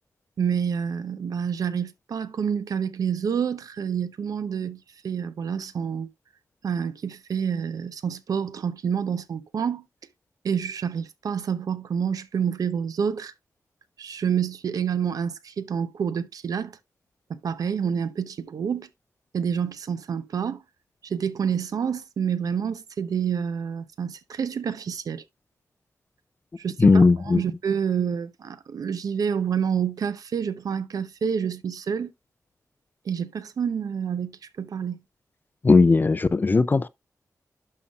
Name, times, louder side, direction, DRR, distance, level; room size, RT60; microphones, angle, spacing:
voice 1, 0.4-6.1 6.6-9.8 10.4-13.3 14.0-16.8 17.3-18.9 19.3-20.6 21.0-25.2 26.6-27.1 27.3-32.1 33.0-35.0, right 7 dB, 75° right, 0.8 m, -28 dB
voice 2, 26.8-27.4 35.6-36.9, left 3 dB, 30° left, 0.4 m, -17 dB
11.5 x 5.6 x 2.4 m
wide cardioid pair, 115°, 6 cm